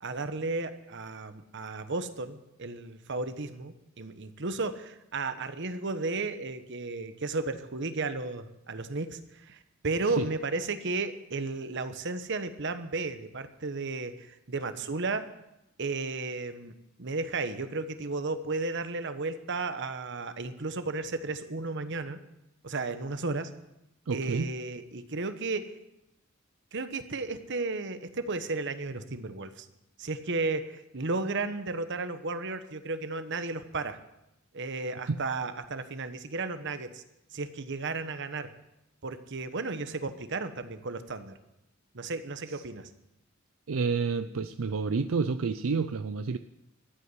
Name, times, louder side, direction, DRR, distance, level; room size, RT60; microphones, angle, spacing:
voice 1, 0.0-15.2 15.8-16.7 17.0-22.2 22.6-23.5 24.1-25.7 26.7-29.7 30.0-34.0 34.5-37.0 37.3-38.5 39.0-41.3 41.9-42.9, right 3 dB, 60° right, 10 dB, 1.1 m, -34 dB
voice 2, 24.1-24.5 35.1-35.2 42.5-42.6 43.7-46.4, right 4 dB, 80° right, 10 dB, 0.5 m, -29 dB
14.0 x 8.5 x 9.7 m, 0.89 s
head